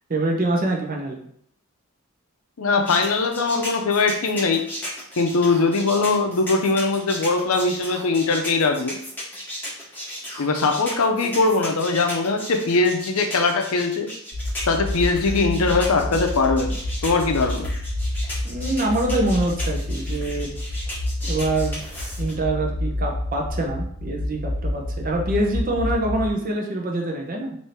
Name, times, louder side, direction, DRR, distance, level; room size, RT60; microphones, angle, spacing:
voice 1, 0.1-1.2 18.4-20.5 21.2-21.9 22.2-27.6, right 2 dB, 40° right, 1 dB, 0.7 m, -25 dB
voice 2, 2.6-4.7 5.2-9.0 10.4-14.1 14.7-16.8 17.0-17.7, left 3 dB, 80° left, 5 dB, 0.6 m, -21 dB
sound 1, 2.9-22.3, equal, 10° left, 1.1 m, -35 dB
sound 2, 14.3-26.3, left 1 dB, 65° right, 1.1 m, -28 dB
3.4 x 2.7 x 4.2 m, 0.67 s
head